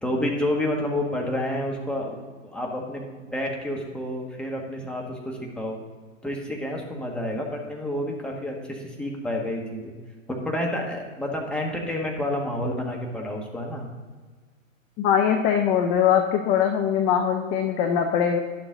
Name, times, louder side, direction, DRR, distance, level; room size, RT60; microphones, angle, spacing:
voice 1, 0.0-2.2 2.4-5.8 6.2-9.9 10.3-13.9, left 1 dB, ahead, -1 dB, 1.5 m, -29 dB
voice 2, 15.0-18.4, left 8 dB, 20° left, 5 dB, 0.4 m, -22 dB
11.0 x 7.2 x 3.9 m, 1.4 s
hypercardioid pair, 120°, 40 cm